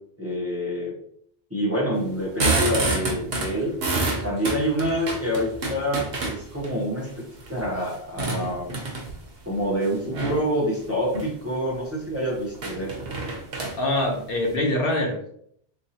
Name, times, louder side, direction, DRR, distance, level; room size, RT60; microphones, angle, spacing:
voice 1, 0.2-0.9 1.5-3.7 4.2-8.7 9.4-12.9, equal, 15° right, -4 dB, 0.8 m, -27 dB
sound 1, 2.1-6.7 7.2-9.3 10.0-10.5 11.0-11.3 11.7-11.8 12.0-12.1 12.5-14.5, right 2 dB, 70° right, 1.1 m, -28 dB
voice 2, 13.8-15.4, left 1 dB, 65° left, 1 dB, 1.0 m, -24 dB
3.5 x 3.1 x 2.7 m, 0.65 s
omnidirectional pair, 1.0 m